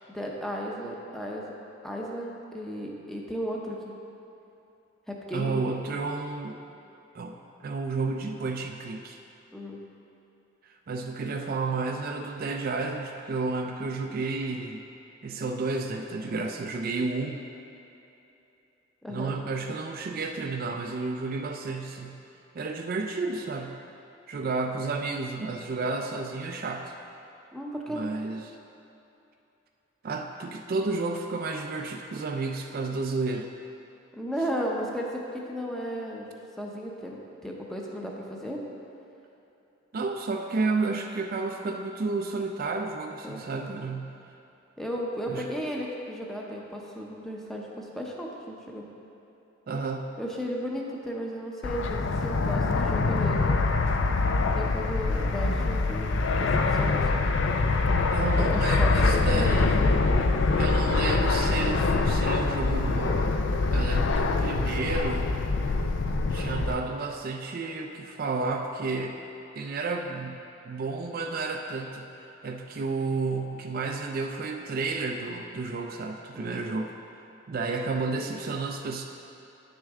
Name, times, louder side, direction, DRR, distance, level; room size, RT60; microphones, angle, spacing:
voice 1, 0.1-1.4 1.8-3.9 5.1-5.6 9.5-9.8 19.0-19.3 27.5-28.0 34.1-36.3 36.6-38.6 43.2-43.4 44.8-48.9 50.2-53.6 54.5-57.2 58.4-60.0 76.3-76.6, equal, ahead, -2 dB, 0.7 m, -35 dB
voice 2, 5.3-6.6 7.1-9.2 10.6-14.8 15.2-17.4 19.1-22.2 22.5-23.8 24.3-26.9 27.9-28.6 30.0-33.5 39.9-44.1 45.3-45.4 49.7-50.0 58.1-59.8 60.6-63.3 63.7-65.3 66.3-69.2 69.6-72.1 72.4-76.9 77.5-79.0, right 3 dB, 50° right, 3 dB, 0.4 m, -31 dB
Fixed-wing aircraft airplane, 51.6-66.7, left 3 dB, 65° left, 0.4 m, -24 dB
8.8 x 6.4 x 3.6 m, 2.9 s
head